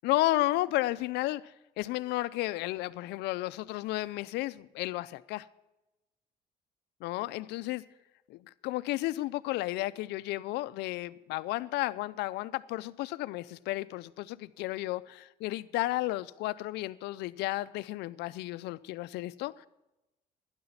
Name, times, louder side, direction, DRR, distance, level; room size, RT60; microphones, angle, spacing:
voice 1, 0.0-5.5 7.0-7.8 8.3-19.7, left 17 dB, 85° left, 0.5 m, -33 dB
12.0 x 9.6 x 5.7 m
cardioid pair, 110°, 17 cm